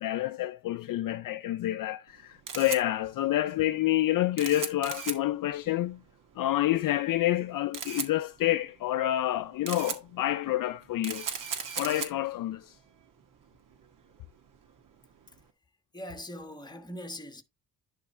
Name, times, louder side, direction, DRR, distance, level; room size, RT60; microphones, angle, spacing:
voice 1, 0.0-6.0 6.4-11.3 11.8-12.7, left 14 dB, 55° left, 0.5 m, -28 dB
Camera, 2.1-15.4, right 6 dB, 50° right, 1.8 m, -40 dB
voice 2, 15.9-17.4, equal, 10° left, 1.4 m, -41 dB
10.5 x 3.6 x 4.4 m
cardioid pair, 110°, 41 cm